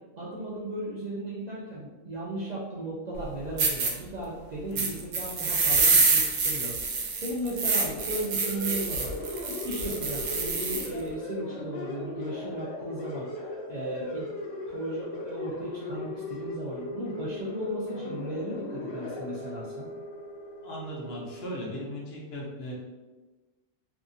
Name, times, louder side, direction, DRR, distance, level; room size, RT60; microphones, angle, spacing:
voice 1, 0.2-9.1 9.5-13.3 13.7-14.3 14.7-19.9, right 1 dB, 60° right, -7 dB, 0.4 m, -36 dB
sound 1, 3.1-3.2 3.6-3.9 4.7-10.9, right 4 dB, 85° right, 0.9 m, -26 dB
sound 2, 7.9-21.6, left 2 dB, 90° left, 1.0 m, -38 dB
voice 2, 20.6-22.7, equal, 65° left, -3 dB, 0.9 m, -37 dB
2.7 x 2.4 x 2.5 m, 1.2 s
omnidirectional pair, 1.2 m